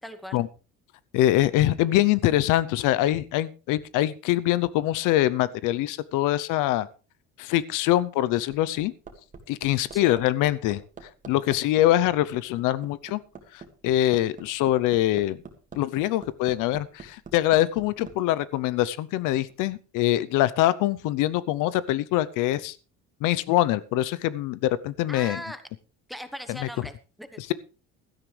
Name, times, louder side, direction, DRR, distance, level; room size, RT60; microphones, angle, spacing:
voice 1, 0.0-0.4 9.9-10.2 25.1-25.6 26.1-27.4, equal, ahead, 10 dB, 1.2 m, -39 dB
voice 2, 1.1-6.9 7.4-8.9 9.5-10.8 11.3-13.2 13.5-15.4 15.7-22.8 23.2-25.4, left 14 dB, 80° left, 17 dB, 0.7 m, -24 dB
Hammer, 8.0-18.2 19.5-19.6, right 5 dB, 25° right, 2.0 m, -44 dB
16.0 x 13.0 x 3.3 m, 0.34 s
cardioid pair, 150°, 31 cm